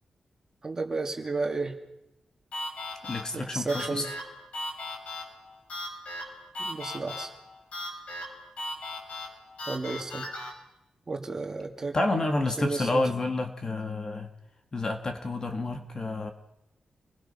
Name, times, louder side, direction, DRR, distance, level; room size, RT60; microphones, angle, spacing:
voice 1, 0.6-1.8 3.3-4.1 6.6-7.3 9.7-10.2 11.1-12.0 12.6-13.0, right 3 dB, 25° right, 3 dB, 2.6 m, -32 dB
sound 1, 2.5-10.5, left 1 dB, 70° left, 5.5 m, -38 dB
voice 2, 3.0-4.1 11.9-14.3 14.7-16.3, left 2 dB, 30° left, 5 dB, 1.8 m, -29 dB
28.5 x 21.0 x 5.7 m, 0.89 s
wide cardioid pair, 150°, 2 cm